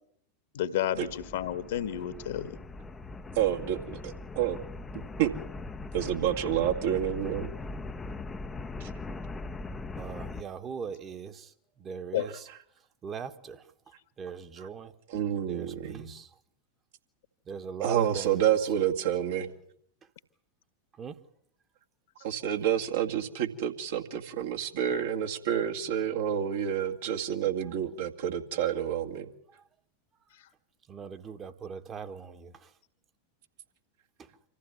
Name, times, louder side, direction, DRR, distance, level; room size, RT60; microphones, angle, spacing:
voice 1, 0.5-2.6 12.1-12.3, left 11 dB, 55° left, 1.7 m, -31 dB
sound 1, 0.9-10.4, left 3 dB, 15° left, 0.9 m, -40 dB
voice 2, 3.4-4.6 5.2-5.3 5.9-7.5 8.8-8.9 15.1-16.1 17.8-19.5 22.2-29.3, right 10 dB, 55° right, 2.1 m, -29 dB
voice 3, 10.0-11.5 11.8-12.5 13.0-13.6 14.2-14.9 15.5-16.3 17.5-18.4 21.0-21.2 30.9-32.7, right 6 dB, 25° right, 1.6 m, -40 dB
26.5 x 15.0 x 9.4 m
figure-of-eight pair, 90°, 0 cm